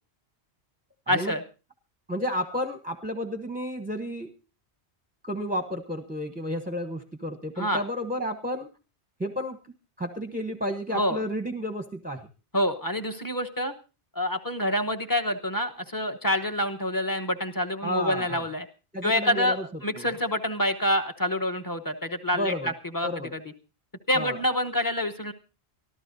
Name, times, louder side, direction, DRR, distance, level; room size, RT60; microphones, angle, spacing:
voice 1, 1.1-1.4 7.6-7.8 10.9-11.2 12.5-13.7 14.1-18.6 19.0-19.6 19.8-23.4 24.1-25.3, left 1 dB, 20° left, 5 dB, 1.0 m, -27 dB
voice 2, 2.1-4.3 5.2-8.7 9.2-9.6 10.0-12.3 17.8-18.4 18.9-19.7 20.0-20.1 22.3-22.7 23.0-23.3 24.1-24.4, equal, 10° right, 7 dB, 0.8 m, -31 dB
24.0 x 14.0 x 2.6 m, 0.32 s
omnidirectional pair, 1.1 m